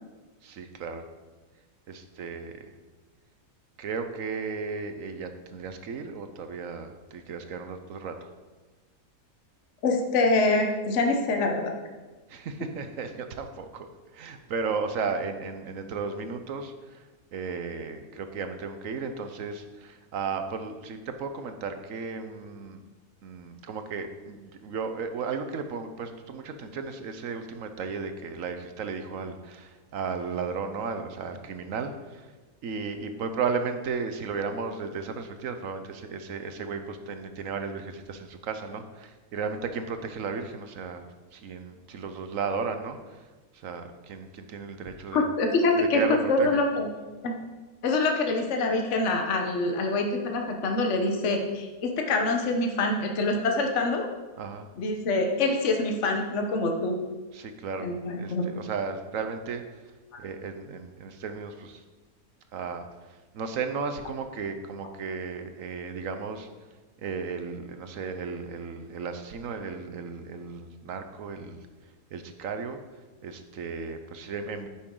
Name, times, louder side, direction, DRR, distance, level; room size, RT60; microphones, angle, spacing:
voice 1, 0.4-1.1 1.9-2.7 3.8-8.3 12.3-13.9 14.1-17.0 17.3-22.8 23.2-32.3 32.6-41.0 41.3-43.0 43.5-45.3 45.8-46.6 54.4-54.7 57.3-57.9 58.1-59.6 60.2-61.8 62.5-66.5 67.0-71.6 72.1-72.8 73.2-74.7, right 5 dB, 65° right, 8 dB, 1.1 m, -34 dB
voice 2, 9.8-11.7 45.1-46.0 46.3-46.9 47.2-47.4 47.8-54.1 54.8-57.0 57.8-58.4, left 2 dB, 55° left, 3 dB, 1.3 m, -25 dB
9.8 x 8.7 x 3.8 m, 1.3 s
omnidirectional pair, 1.6 m